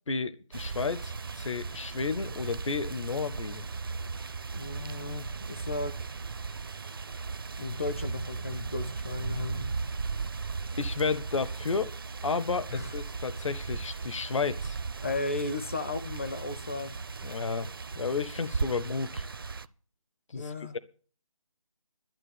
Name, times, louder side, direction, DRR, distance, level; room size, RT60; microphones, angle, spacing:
voice 1, 0.1-3.6 10.8-11.9 12.2-14.8 17.2-17.7 17.9-19.2 20.3-20.8, left 4 dB, 60° left, 0.8 m, -32 dB
sound 1, 0.5-19.7, right 4 dB, 40° right, 0.5 m, -37 dB
voice 2, 4.5-6.1 7.6-9.8 12.7-12.9 15.0-17.0 20.3-20.8, left 3 dB, 25° left, 0.5 m, -35 dB
12.0 x 7.2 x 8.2 m
figure-of-eight pair, 165°, 18 cm